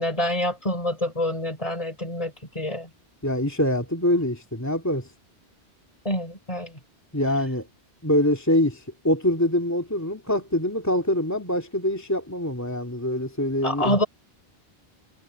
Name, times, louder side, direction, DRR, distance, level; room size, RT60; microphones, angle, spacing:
voice 1, 0.0-2.9 6.1-6.8 13.6-14.1, left 1 dB, 35° left, 5.2 m, -27 dB
voice 2, 3.2-5.1 7.1-7.7 8.0-14.0, left 1 dB, 15° left, 2.4 m, -24 dB
omnidirectional pair, 1.1 m